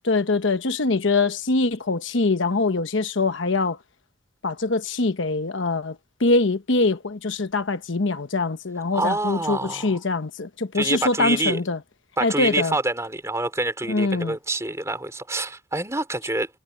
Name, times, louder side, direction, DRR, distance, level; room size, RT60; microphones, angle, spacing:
voice 1, 0.0-3.8 4.4-11.8 12.2-12.7 13.9-14.4, left 3 dB, 70° left, 1.0 m, -23 dB
voice 2, 8.9-10.0 10.7-11.6 12.2-16.5, right 2 dB, 15° right, 4.0 m, -26 dB
head